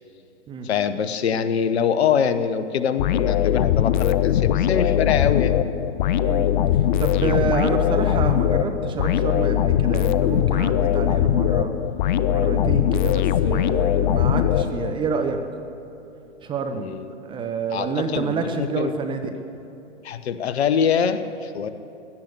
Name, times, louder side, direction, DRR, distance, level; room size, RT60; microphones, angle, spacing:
voice 1, 0.6-5.6 16.7-17.1 17.7-18.9 20.0-21.7, left 7 dB, 60° left, 12 dB, 1.0 m, -24 dB
sound 1, 3.0-15.2, left 10 dB, 40° left, 0.6 m, -21 dB
voice 2, 7.0-11.7 12.3-15.4 16.4-16.9 17.2-19.3, right 5 dB, 15° right, 6 dB, 0.6 m, -28 dB
16.5 x 12.0 x 6.7 m, 2.9 s
hypercardioid pair, 120°, 36 cm